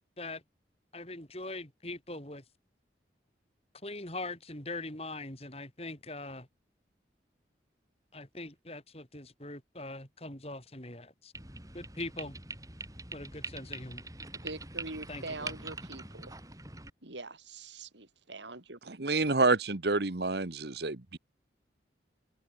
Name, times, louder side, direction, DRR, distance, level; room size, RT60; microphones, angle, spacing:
voice 1, 0.9-2.4 3.8-6.5 8.1-11.3 11.7-12.4 13.1-14.0 15.1-15.5, left 2 dB, 35° left, 4.9 m, -42 dB
sound 1, 11.3-16.9, right 3 dB, 20° right, 6.7 m, -43 dB
voice 2, 14.4-16.3 17.0-19.1, right 2 dB, 80° right, 3.9 m, -44 dB
voice 3, 18.9-21.2, right 3 dB, 65° right, 1.3 m, -28 dB
open air
head